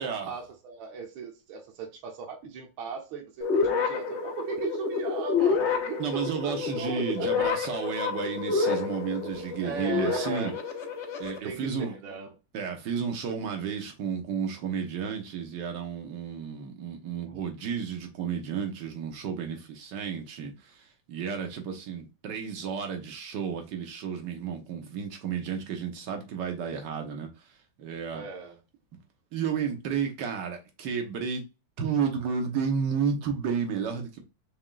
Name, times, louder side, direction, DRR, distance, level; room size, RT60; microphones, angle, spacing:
voice 1, 0.0-7.5 9.6-10.5 11.4-12.3 28.1-28.6, right 6 dB, 85° right, 1.9 m, -38 dB
sound 1, 3.4-11.4, left 5 dB, 65° left, 0.6 m, -29 dB
voice 2, 6.0-10.5 11.2-11.9 12.5-27.3 27.8-28.2 29.3-31.4 31.8-34.2, right 6 dB, 60° right, 1.6 m, -32 dB
5.4 x 3.6 x 2.3 m
omnidirectional pair, 2.2 m